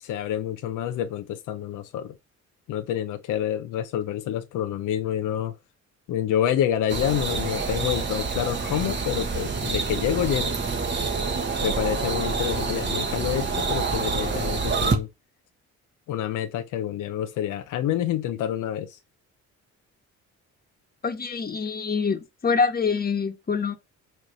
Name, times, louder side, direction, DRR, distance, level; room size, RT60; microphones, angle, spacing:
voice 1, 0.0-2.2 2.7-5.5 6.1-10.5 11.6-15.1 16.1-19.0, left 10 dB, 85° left, 0.8 m, -28 dB
sound 1, 6.9-14.9, right 4 dB, 35° right, 1.7 m, -27 dB
voice 2, 21.0-23.7, left 5 dB, 30° left, 1.4 m, -25 dB
9.2 x 3.3 x 5.5 m
cardioid pair, 90°, 30 cm